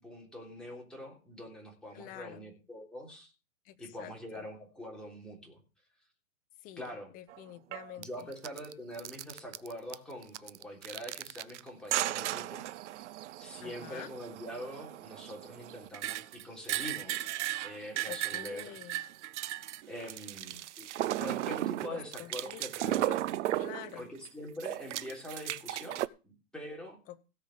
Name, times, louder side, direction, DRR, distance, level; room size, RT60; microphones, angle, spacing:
voice 1, 0.0-3.3 3.8-5.6 6.8-7.1 8.0-12.6 13.4-17.3 17.6-18.7 19.9-20.9 21.2-23.2 24.0-27.0, equal, ahead, -2 dB, 3.6 m, -44 dB
voice 2, 1.9-2.5 3.6-4.4 6.6-6.8 7.1-8.3 13.6-14.1 18.1-19.0 21.9-23.2 23.5-24.1 27.1-27.3, left 13 dB, 20° left, 12 dB, 0.7 m, -47 dB
sound 1, 7.3-7.4 7.7-8.0 8.3-8.7 9.0-9.9 10.2-11.6 11.9-24.3 24.6-26.1, right 14 dB, 55° right, 0.7 m, -36 dB
16.5 x 5.7 x 6.7 m, 0.32 s
hypercardioid pair, 145°, 43 cm